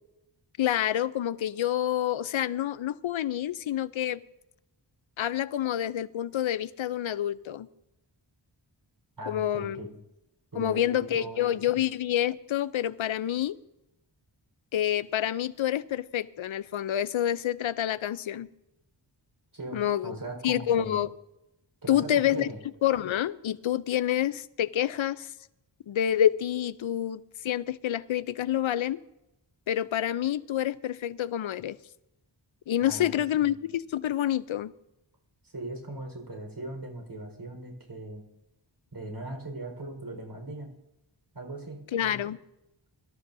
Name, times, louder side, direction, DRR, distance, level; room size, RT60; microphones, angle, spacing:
voice 1, 0.6-4.2 5.2-7.7 9.3-9.9 10.6-13.6 14.7-18.5 19.7-20.2 20.4-21.1 21.9-22.5 22.8-25.3 25.9-29.0 29.7-31.8 32.7-34.7 41.9-42.4, left 11 dB, 85° left, 0.6 m, -28 dB
voice 2, 9.2-10.0 10.5-11.8 19.5-21.0 21.8-22.6 32.8-33.5 35.5-38.2 38.9-40.7 41.3-42.2, right 2 dB, 60° right, 4.6 m, -39 dB
23.5 x 13.5 x 2.7 m
wide cardioid pair, 85°, 46 cm